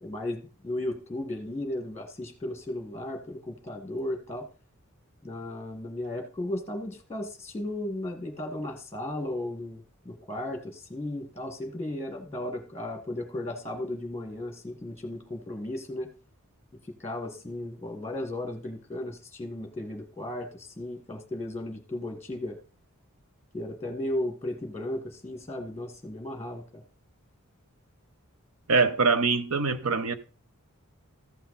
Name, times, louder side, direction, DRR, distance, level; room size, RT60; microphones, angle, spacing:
voice 1, 0.0-4.5 5.2-16.1 17.0-22.6 23.5-26.8, left 1 dB, 10° left, 1.4 m, -35 dB
voice 2, 28.7-30.1, right 4 dB, 70° right, 0.8 m, -23 dB
14.5 x 5.8 x 4.0 m
head